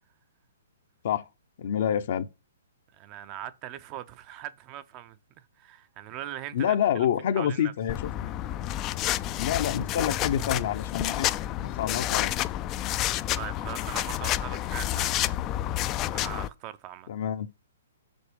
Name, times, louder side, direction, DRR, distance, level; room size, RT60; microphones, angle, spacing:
voice 1, 1.6-2.3 6.5-8.1 9.4-11.3 11.8-12.3 17.1-17.5, left 9 dB, 55° left, 0.7 m, -27 dB
voice 2, 3.0-7.1 7.4-7.7 13.3-15.4 16.1-17.1, right 12 dB, 35° right, 0.6 m, -40 dB
sound 1, 7.9-16.5, left 13 dB, 30° left, 0.3 m, -29 dB
6.0 x 5.2 x 3.4 m
hypercardioid pair, 125°, 0 cm